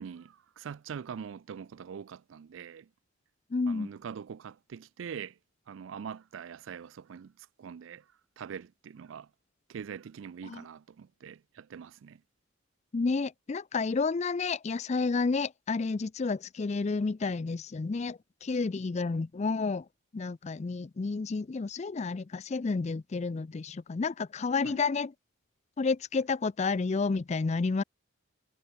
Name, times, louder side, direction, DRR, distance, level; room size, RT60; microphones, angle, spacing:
voice 1, 0.0-2.9 3.7-5.4 5.7-8.1 8.4-9.3 9.7-12.2 24.6-24.8, right 7 dB, 70° right, 0.4 m, -43 dB
voice 2, 3.5-3.9 10.4-10.6 12.9-19.9 20.1-25.1 25.8-27.8, left 4 dB, 35° left, 0.4 m, -30 dB
head